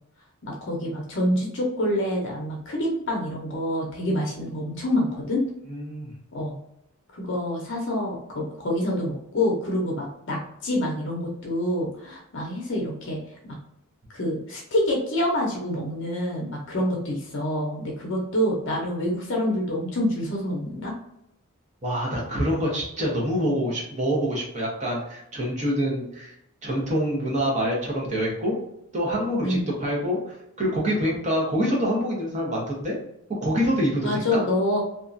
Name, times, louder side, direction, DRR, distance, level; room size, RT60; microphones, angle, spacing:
voice 1, 0.4-5.4 6.3-6.6 7.1-13.2 14.1-20.9 29.4-29.7 34.0-34.8, left 1 dB, 55° left, -1 dB, 0.6 m, -27 dB
voice 2, 5.7-6.1 21.8-26.3 26.6-28.6 28.9-33.0 33.4-34.4, equal, 30° right, -3 dB, 0.9 m, -26 dB
2.8 x 2.3 x 2.5 m, 0.78 s
head